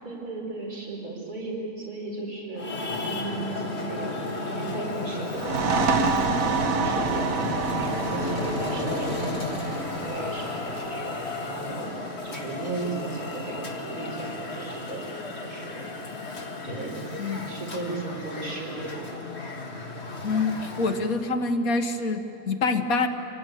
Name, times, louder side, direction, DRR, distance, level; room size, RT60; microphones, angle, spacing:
voice 1, 0.0-4.2 4.4-12.0 12.2-15.9 16.6-17.0 17.3-19.1, right 3 dB, 85° right, -2 dB, 5.0 m, -36 dB
Traffic noise roadway noise, 2.5-21.2, left 3 dB, 45° left, 2.2 m, -34 dB
sound 1, 5.3-12.7, right 4 dB, 65° right, 1.5 m, -28 dB
voice 2, 20.2-23.1, left 3 dB, 70° left, 5 dB, 1.8 m, -26 dB
25.0 x 19.5 x 9.2 m, 2.9 s
omnidirectional pair, 1.5 m